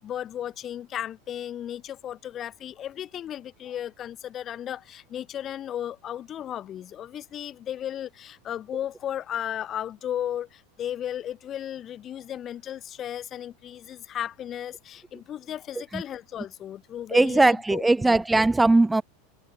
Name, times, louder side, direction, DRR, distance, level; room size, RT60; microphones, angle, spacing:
voice 1, 0.0-17.4 17.7-18.2, left 10 dB, 35° left, 4.4 m, -35 dB
voice 2, 17.1-19.0, right 2 dB, 10° right, 0.7 m, -19 dB
figure-of-eight pair, 85°, 0 cm